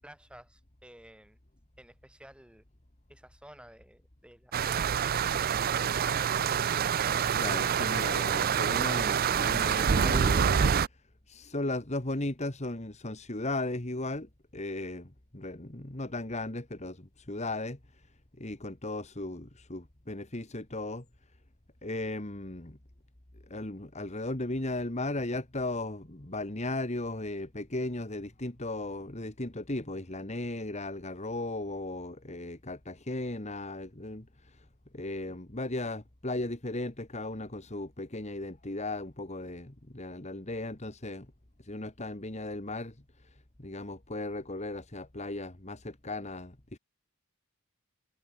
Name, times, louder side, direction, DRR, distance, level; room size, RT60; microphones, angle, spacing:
voice 1, 0.0-1.4 1.8-2.6 3.1-6.2, right 1 dB, 5° right, 7.9 m, -53 dB
sound 1, 4.5-10.9, right 7 dB, 40° right, 0.4 m, -26 dB
voice 2, 7.4-11.0 11.3-18.1 18.4-21.1 21.8-22.8 23.5-34.7 34.9-41.3 41.6-46.8, left 2 dB, 30° left, 1.8 m, -36 dB
head